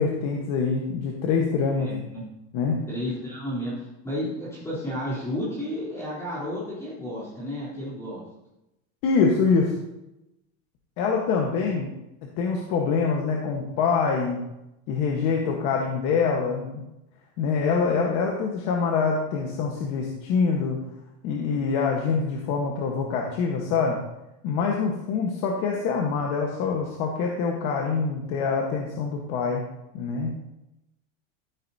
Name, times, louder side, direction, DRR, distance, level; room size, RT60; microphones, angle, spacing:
voice 1, 0.0-1.9 2.5-2.8 9.0-9.7 11.0-11.9 12.4-14.4 14.9-16.8 17.4-20.9 21.2-24.0 24.4-29.6 29.9-30.3, left 5 dB, 45° left, 0 dB, 1.3 m, -25 dB
voice 2, 1.7-2.2 2.9-8.2 11.8-11.9, left 1 dB, 10° left, -9 dB, 3.4 m, -32 dB
12.5 x 10.0 x 2.8 m, 0.90 s
supercardioid pair, 175°, 34 cm